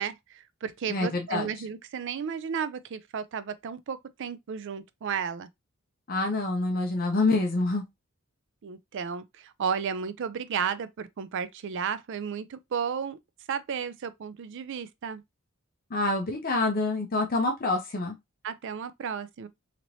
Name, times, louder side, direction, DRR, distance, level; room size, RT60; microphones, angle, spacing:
voice 1, 0.0-5.5 8.6-13.2 13.5-15.2 18.4-19.5, right 7 dB, 55° right, 0.4 m, -33 dB
voice 2, 0.9-1.5 6.1-7.8 15.9-18.1, left 2 dB, 40° left, 0.6 m, -26 dB
3.0 x 2.9 x 2.6 m
head